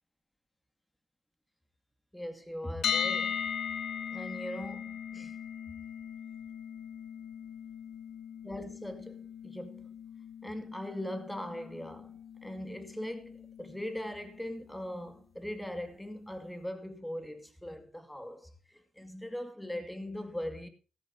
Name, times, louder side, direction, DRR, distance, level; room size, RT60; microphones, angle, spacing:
voice 1, 2.1-3.4 4.1-5.4 8.4-9.9 10.4-20.7, left 1 dB, 5° left, 2.3 m, -40 dB
sound 1, 2.8-14.7, left 8 dB, 60° left, 1.9 m, -39 dB
15.5 x 14.0 x 2.8 m
cardioid pair, 90°, 0 cm